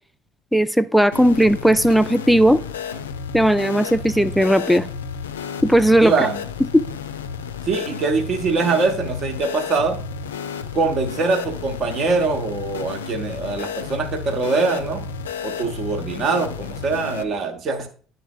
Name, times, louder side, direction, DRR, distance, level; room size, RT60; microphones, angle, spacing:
voice 1, 0.5-2.6 3.3-4.9 5.6-6.3 6.7-6.8, equal, ahead, 11 dB, 0.4 m, -16 dB
sound 1, 1.1-17.2, left 6 dB, 75° left, 0.3 m, -32 dB
voice 2, 6.0-6.4 7.6-10.0 10.7-15.0 15.4-17.9, right 4 dB, 45° right, 6 dB, 0.9 m, -23 dB
11.0 x 3.9 x 2.3 m, 0.41 s
figure-of-eight pair, 55°, 0 cm